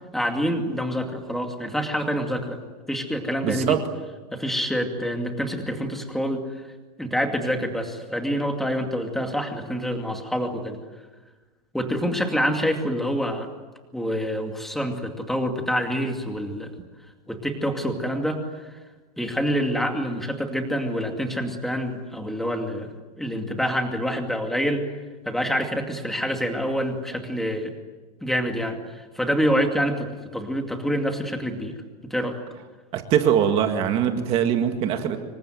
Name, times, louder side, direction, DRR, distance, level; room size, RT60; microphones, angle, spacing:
voice 1, 0.1-2.6 2.9-3.8 4.3-6.5 7.0-10.8 11.7-13.5 13.9-16.7 17.3-18.8 19.2-22.9 23.2-24.8 25.2-27.7 28.2-30.1 30.3-31.7 32.1-32.4, equal, ahead, 4 dB, 2.4 m, -26 dB
voice 2, 3.4-3.8 32.9-35.2, right 9 dB, 30° right, 6 dB, 1.9 m, -22 dB
26.5 x 24.0 x 9.3 m, 1.3 s
supercardioid pair, 175°, 21 cm